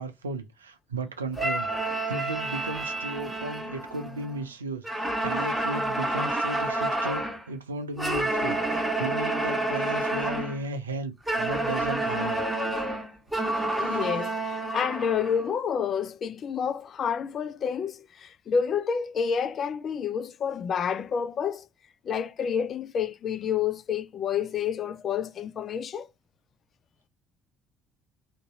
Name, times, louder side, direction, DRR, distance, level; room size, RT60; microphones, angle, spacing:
voice 1, 0.0-12.4 13.7-14.1, right 2 dB, 85° right, 0.4 m, -35 dB
sound 1, 1.3-4.4 4.8-7.4 8.0-10.6 11.3-15.5, right 1 dB, 5° right, 1.2 m, -29 dB
voice 2, 13.8-21.7 22.0-26.1, left 7 dB, 45° left, 0.3 m, -29 dB
2.6 x 2.6 x 2.3 m
figure-of-eight pair, 55°, 0 cm